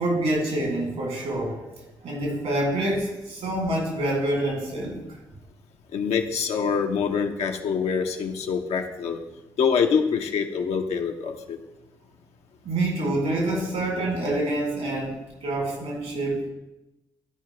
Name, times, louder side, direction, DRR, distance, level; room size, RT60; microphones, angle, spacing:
voice 1, 0.0-1.7 2.0-5.1 12.6-16.5, right 1 dB, 75° right, -2 dB, 3.1 m, -26 dB
voice 2, 5.9-9.2 9.6-11.6, left 6 dB, 80° left, 4 dB, 0.8 m, -25 dB
12.5 x 4.7 x 3.3 m, 0.97 s
hypercardioid pair, 45°, 11 cm